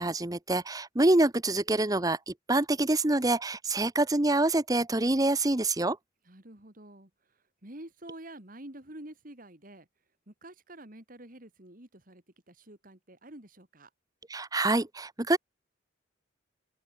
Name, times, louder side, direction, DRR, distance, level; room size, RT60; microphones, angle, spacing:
voice 1, 0.0-6.0 14.3-15.4, right 2 dB, 20° right, 0.9 m, -26 dB
voice 2, 6.2-7.1 7.6-9.9 10.3-13.9, right 1 dB, 45° right, 3.1 m, -48 dB
head